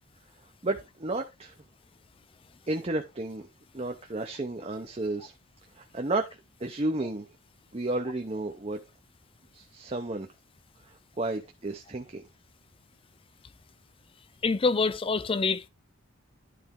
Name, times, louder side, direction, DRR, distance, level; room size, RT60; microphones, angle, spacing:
voice 1, 0.6-1.5 2.7-3.5 3.7-5.3 5.8-6.3 6.6-7.2 7.7-8.8 9.5-10.3 11.2-12.2, right 2 dB, 30° right, 0.8 m, -32 dB
voice 2, 14.4-15.7, left 4 dB, 25° left, 0.4 m, -26 dB
11.5 x 4.2 x 3.7 m
head